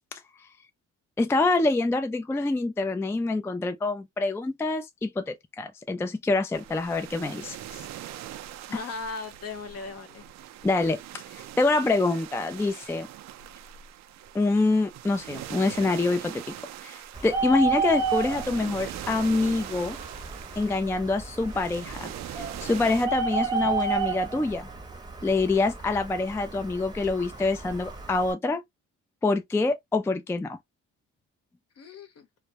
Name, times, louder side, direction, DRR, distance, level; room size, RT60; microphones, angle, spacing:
voice 1, 1.2-7.8 8.7-8.8 10.6-11.2 11.6-13.1 14.3-16.5 16.8-20.0 20.6-24.7 25.2-28.6 29.2-30.6, left 3 dB, 10° left, 0.3 m, -26 dB
sound 1, 6.5-23.1, right 12 dB, 65° right, 0.4 m, -42 dB
voice 2, 8.7-10.3 31.8-32.3, left 4 dB, 55° left, 0.8 m, -37 dB
Bird, 17.1-28.3, right 4 dB, 15° right, 0.7 m, -32 dB
2.2 x 2.1 x 2.7 m
cardioid pair, 90°, 30 cm